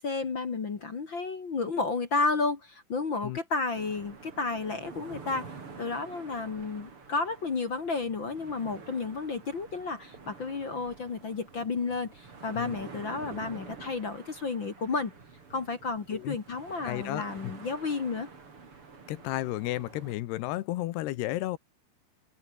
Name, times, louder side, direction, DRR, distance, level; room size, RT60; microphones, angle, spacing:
voice 1, 0.0-5.5 5.8-15.1 15.5-18.3, left 4 dB, 40° left, 1.8 m, -32 dB
sound 1, 3.7-20.1, right 4 dB, 30° right, 4.2 m, -48 dB
voice 2, 16.8-17.5 19.1-21.6, left 16 dB, 75° left, 2.9 m, -33 dB
omnidirectional pair, 5.0 m